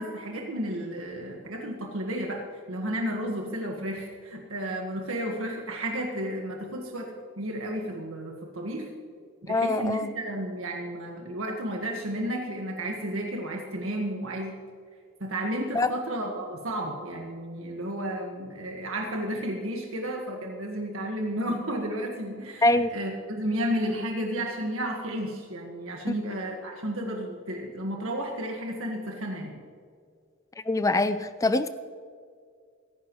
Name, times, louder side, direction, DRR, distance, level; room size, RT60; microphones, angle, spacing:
voice 1, 0.0-8.9 9.4-14.5 15.2-29.6, right 1 dB, 85° right, 0 dB, 1.7 m, -32 dB
voice 2, 9.5-10.1 15.7-15.9 22.6-22.9 30.7-31.7, left 2 dB, 15° left, 12 dB, 0.4 m, -23 dB
17.5 x 14.5 x 3.1 m, 2.2 s
head